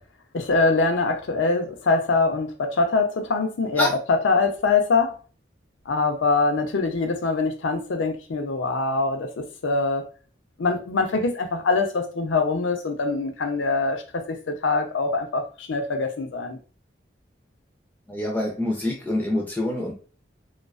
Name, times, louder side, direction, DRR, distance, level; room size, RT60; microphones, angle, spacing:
voice 1, 0.3-5.2 5.9-10.0 10.6-16.6, left 3 dB, 80° left, 0.5 m, -23 dB
voice 2, 18.1-19.9, left 1 dB, 10° left, 0.4 m, -26 dB
2.3 x 2.3 x 2.3 m
head